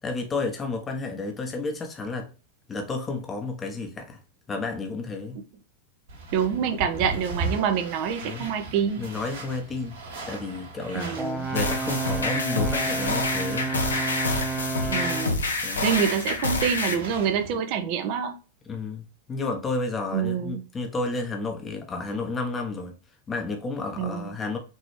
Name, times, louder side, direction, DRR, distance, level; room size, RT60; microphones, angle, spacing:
voice 1, 0.0-2.3 2.7-4.2 4.5-5.4 8.2-8.5 9.0-10.0 10.3-11.2 11.5-13.7 15.6-15.9 18.6-23.0 23.3-24.6, left 3 dB, 20° left, 1.0 m, -31 dB
sound 1, 6.1-17.6, right 2 dB, 65° right, 2.3 m, -38 dB
voice 2, 6.3-9.1 10.9-11.5 14.9-15.4 15.8-18.3 20.1-20.6 24.0-24.3, right 7 dB, 45° right, 0.8 m, -26 dB
Brass instrument, 11.2-15.4, right 4 dB, 5° right, 0.6 m, -30 dB
sound 2, 11.6-16.9, left 3 dB, 75° left, 1.0 m, -27 dB
5.4 x 3.0 x 3.3 m
figure-of-eight pair, 90°, 0 cm